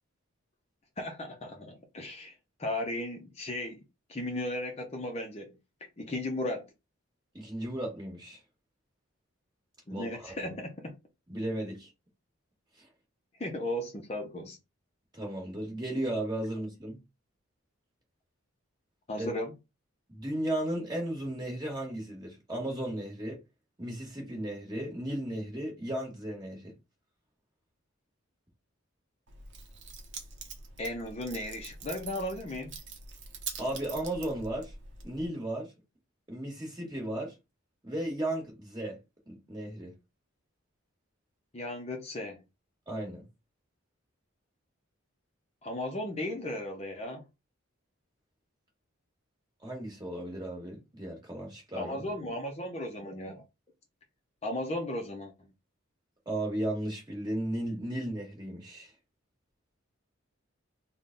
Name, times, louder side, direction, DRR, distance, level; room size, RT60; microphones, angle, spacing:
voice 1, 1.0-2.3 2.6-3.8 4.1-5.6 6.0-6.7 9.9-11.0 13.4-14.6 19.1-19.5 30.8-32.8 41.5-42.4 45.6-47.2 51.7-53.4 54.4-55.5, left 1 dB, 30° left, 0.5 m, -36 dB
voice 2, 7.3-8.4 9.9-10.1 10.4-10.5 11.3-11.9 12.8-12.9 15.1-17.0 19.2-19.3 20.1-23.4 23.8-26.7 33.6-34.7 35.0-35.7 36.3-37.3 37.8-39.0 39.3-39.9 42.9-43.2 49.6-52.0 56.2-58.9, right 1 dB, 20° right, 1.4 m, -35 dB
Keys jangling, 29.3-35.3, right 5 dB, 55° right, 0.7 m, -44 dB
3.7 x 2.2 x 3.8 m
head